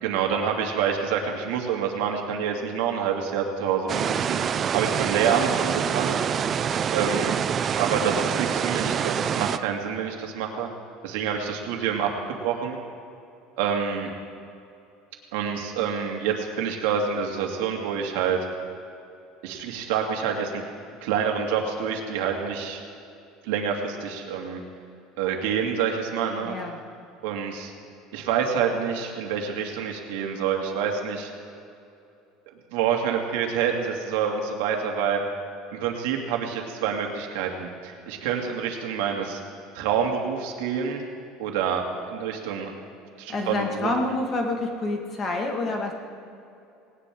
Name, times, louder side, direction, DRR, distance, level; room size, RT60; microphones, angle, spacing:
voice 1, 0.0-4.4 4.7-6.2 6.9-7.4 7.8-10.7 11.0-12.1 12.4-12.8 13.6-14.1 15.3-18.4 19.4-20.6 21.0-22.8 23.4-24.6 25.2-26.6 27.2-27.7 28.1-31.3 32.7-35.2 35.7-39.4 39.7-41.0 41.4-41.8 42.1-42.7 43.2-43.9, right 7 dB, 80° right, 2 dB, 2.4 m, -27 dB
sound 1, 3.9-9.6, right 8 dB, 25° right, 0.4 m, -26 dB
voice 2, 26.4-26.8 43.3-45.9, left 2 dB, 30° left, 2 dB, 1.9 m, -28 dB
19.0 x 18.5 x 3.8 m, 2.6 s
cardioid pair, 160°, 0 cm